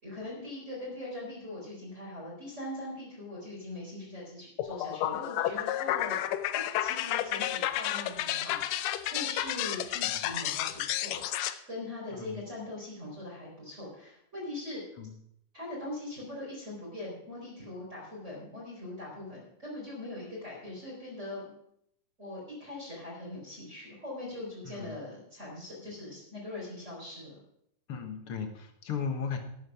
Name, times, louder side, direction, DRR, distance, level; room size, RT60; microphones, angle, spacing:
voice 1, 0.0-6.2 6.5-11.2 11.7-14.8 15.5-21.5 22.2-27.4, left 2 dB, 20° right, -5 dB, 4.2 m, -41 dB
sound 1, 4.6-11.5, left 12 dB, 85° left, 1.5 m, -31 dB
voice 2, 24.7-25.0 27.9-29.4, left 6 dB, 55° left, 5 dB, 1.8 m, -36 dB
12.0 x 9.0 x 5.7 m, 0.73 s
omnidirectional pair, 3.7 m